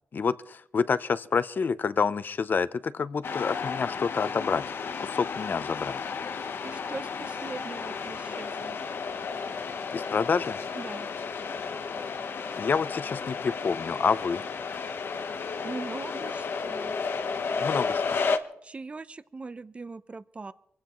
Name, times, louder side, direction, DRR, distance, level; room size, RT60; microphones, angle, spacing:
voice 1, 0.1-4.7 5.0-6.0 9.9-10.6 12.5-14.4 17.6-18.2, left 5 dB, 50° left, 15 dB, 0.6 m, -28 dB
sound 1, 3.2-18.4, left 5 dB, 65° left, 1.0 m, -33 dB
voice 2, 6.6-8.8 10.7-11.1 15.6-17.0 18.6-20.5, right 3 dB, 30° right, 15 dB, 0.6 m, -40 dB
25.5 x 16.0 x 3.1 m, 0.74 s
wide cardioid pair, 135°, 4 cm